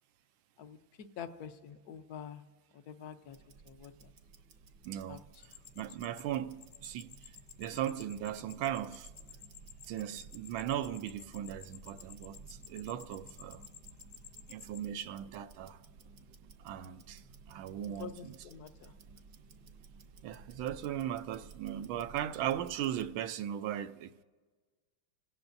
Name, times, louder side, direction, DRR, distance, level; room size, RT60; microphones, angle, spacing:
voice 1, 0.6-2.4 2.7-3.4 3.6-4.1 5.1-5.2 17.9-18.9, left 7 dB, 60° left, 1.2 m, -47 dB
Tick-tock, 3.3-23.2, right 4 dB, 55° right, 1.3 m, -56 dB
voice 2, 4.8-9.1 9.9-13.6 14.5-15.8 16.6-18.3 20.2-24.2, right 11 dB, 75° right, 1.4 m, -38 dB
sound 1, 5.4-14.8, left 10 dB, 85° left, 1.6 m, -55 dB
28.0 x 17.5 x 2.6 m
omnidirectional pair, 2.3 m